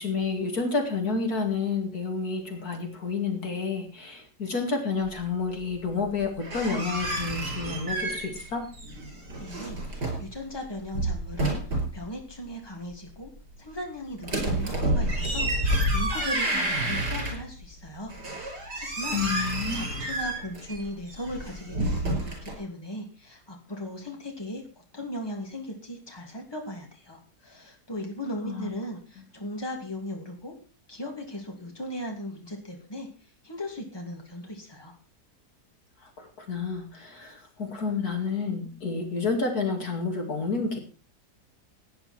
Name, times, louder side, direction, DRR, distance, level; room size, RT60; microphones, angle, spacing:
voice 1, 0.0-8.7 19.1-19.8 28.4-28.7 36.0-40.8, left 4 dB, 65° left, 3 dB, 2.8 m, -30 dB
sound 1, 6.2-8.5 8.7-10.3 10.8-12.0 14.2-17.7 18.1-22.5, right 1 dB, 85° right, 5.6 m, -29 dB
voice 2, 9.4-13.3 13.6-18.1 18.8-19.2 19.7-30.5 30.9-33.1 33.4-34.9, left 1 dB, 15° left, 1 dB, 2.8 m, -38 dB
16.5 x 9.6 x 4.4 m, 0.35 s
omnidirectional pair, 1.7 m